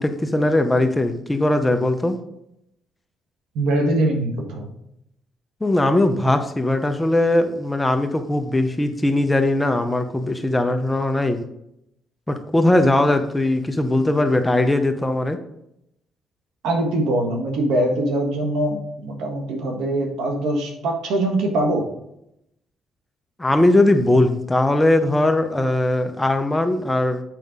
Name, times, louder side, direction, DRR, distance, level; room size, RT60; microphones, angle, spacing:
voice 1, 0.0-2.2 5.6-11.4 12.3-15.4 23.4-27.2, left 1 dB, 10° left, 7 dB, 0.8 m, -19 dB
voice 2, 3.5-4.7 16.6-21.8, right 1 dB, 90° right, 2 dB, 1.5 m, -22 dB
7.7 x 5.3 x 3.7 m, 0.78 s
cardioid pair, 90°, 0 cm